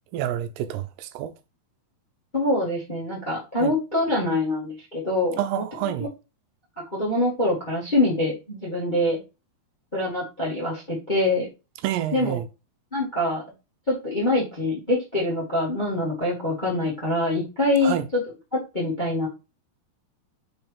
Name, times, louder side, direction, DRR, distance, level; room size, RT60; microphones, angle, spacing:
voice 1, 0.1-1.3 3.6-3.7 5.4-6.1 11.8-12.4 17.8-18.0, right 11 dB, 80° right, 2.5 m, -28 dB
voice 2, 2.3-5.6 6.9-9.2 9.9-11.5 12.1-12.4 12.9-13.4 13.9-18.2 18.5-19.3, left 1 dB, 20° left, 1.3 m, -24 dB
6.1 x 4.5 x 3.5 m
omnidirectional pair, 4.7 m